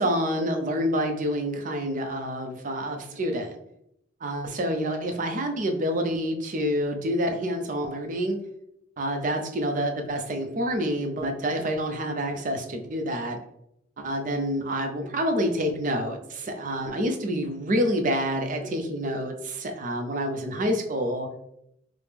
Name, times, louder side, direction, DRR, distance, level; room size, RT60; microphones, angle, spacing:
voice 1, 0.0-3.6 4.2-8.4 9.0-13.4 14.0-21.3, equal, 45° right, 4 dB, 0.5 m, -27 dB
4.8 x 2.0 x 3.3 m, 0.78 s
head